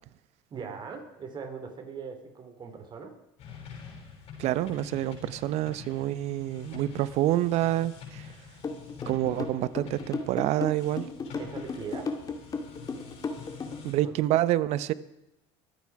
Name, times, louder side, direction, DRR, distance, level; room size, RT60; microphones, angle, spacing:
voice 1, 0.5-3.1 11.4-12.1 14.0-14.1, right 5 dB, 35° right, 5 dB, 3.2 m, -40 dB
sound 1, 3.4-13.9, left 6 dB, 55° left, 6.4 m, -46 dB
voice 2, 4.4-8.3 9.1-11.1 13.8-14.9, right 14 dB, 60° right, 16 dB, 0.9 m, -27 dB
sound 2, 8.6-13.9, left 4 dB, 30° left, 2.1 m, -34 dB
23.5 x 8.7 x 4.8 m, 0.91 s
supercardioid pair, 105°, 13 cm